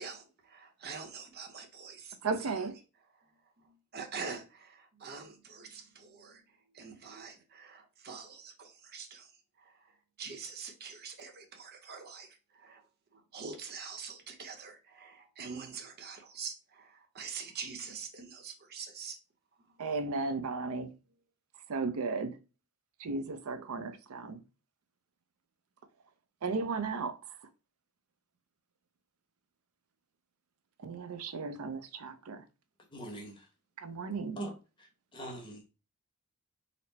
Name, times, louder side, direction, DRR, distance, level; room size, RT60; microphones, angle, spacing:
voice 1, 0.0-2.5 3.2-9.3 9.6-12.9 13.1-19.2 19.6-19.8, right 5 dB, 45° right, 0.8 m, -45 dB
voice 2, 2.2-2.7 19.8-20.9 21.7-22.4 23.0-24.4 26.4-27.2 30.8-32.4 33.8-34.4, right 4 dB, 75° right, 0.5 m, -35 dB
voice 3, 32.9-33.5 34.4-34.5 34.8-35.6, right 1 dB, 20° left, 1.1 m, -42 dB
4.2 x 2.0 x 4.0 m
head